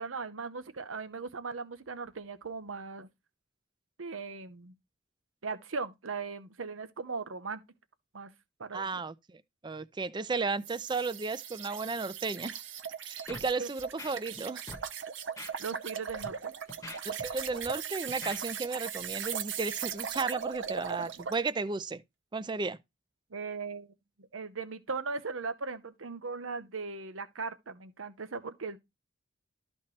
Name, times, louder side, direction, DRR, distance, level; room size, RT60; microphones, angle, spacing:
voice 1, 0.0-3.1 4.0-4.7 5.4-7.6 8.1-8.3 8.6-9.0 13.6-13.7 15.6-16.5 23.3-28.8, right 4 dB, 90° right, 0.9 m, -38 dB
voice 2, 8.7-12.6 13.0-14.7 17.1-22.0 22.3-22.8, right 4 dB, 25° right, 0.4 m, -34 dB
sound 1, 10.6-21.4, right 8 dB, 65° right, 0.6 m, -39 dB
Scratching (performance technique), 13.3-13.5 13.8-14.4 14.7-14.8 15.4-15.5 16.1-16.3 16.7-17.7 18.1-18.4, left 2 dB, 15° left, 1.0 m, -44 dB
12.5 x 4.3 x 3.2 m
head